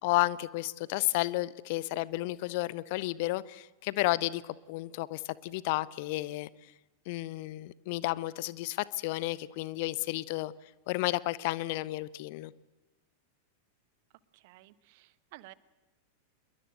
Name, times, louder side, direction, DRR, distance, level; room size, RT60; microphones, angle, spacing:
voice 1, 0.0-6.5 7.1-10.5 10.9-12.5, left 19 dB, 50° left, 0.9 m, -32 dB
voice 2, 14.3-15.5, right 19 dB, 50° right, 1.2 m, -53 dB
26.5 x 22.5 x 8.0 m
figure-of-eight pair, 90°, 0 cm